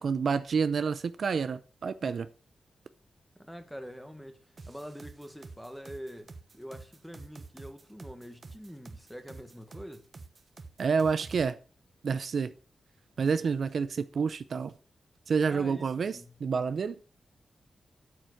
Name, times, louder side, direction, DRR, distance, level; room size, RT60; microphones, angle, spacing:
voice 1, 0.0-2.3 10.8-11.6 12.0-12.5 13.2-14.7 15.3-17.0, right 5 dB, 55° right, 0.6 m, -29 dB
voice 2, 3.3-10.1 15.4-16.4, equal, ahead, 1.5 m, -45 dB
sound 1, 4.6-11.4, right 3 dB, 35° right, 1.0 m, -48 dB
9.0 x 7.4 x 6.5 m
wide cardioid pair, 140°, 0 cm